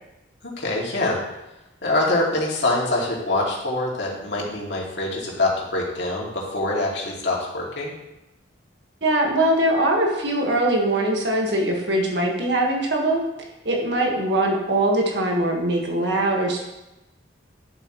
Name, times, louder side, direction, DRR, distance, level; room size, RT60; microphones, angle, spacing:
voice 1, 0.4-1.2 1.8-7.9, left 2 dB, 65° left, -3 dB, 2.4 m, -24 dB
voice 2, 9.0-13.2 13.6-16.6, right 1 dB, 65° right, 0 dB, 1.7 m, -22 dB
11.0 x 7.8 x 3.1 m, 0.96 s
head